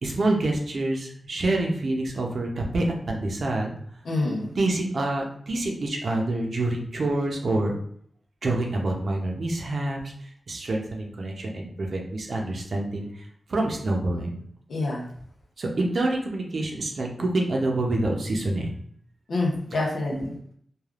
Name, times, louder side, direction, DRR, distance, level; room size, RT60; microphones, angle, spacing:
voice 1, 0.0-3.7 4.6-7.8 8.4-10.1 10.5-13.1 13.5-14.3 15.6-18.7 20.1-20.3, right 2 dB, 60° right, 0 dB, 0.6 m, -27 dB
voice 2, 4.0-4.5 14.7-15.1 19.3-20.3, left 2 dB, 80° left, -4 dB, 0.6 m, -27 dB
3.3 x 2.3 x 2.4 m, 0.63 s
wide cardioid pair, 100°, 0 cm